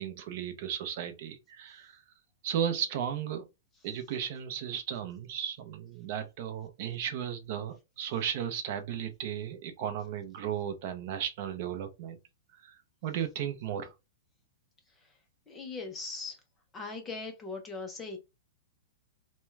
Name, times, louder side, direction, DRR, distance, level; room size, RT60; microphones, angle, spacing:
voice 1, 0.0-2.0 2.4-3.5 3.8-12.2 12.6-13.9, right 9 dB, 40° right, 0.6 m, -35 dB
voice 2, 15.5-16.4 16.7-18.2, left 3 dB, 10° left, 0.6 m, -40 dB
3.4 x 2.2 x 3.1 m
supercardioid pair, 170°, 0 cm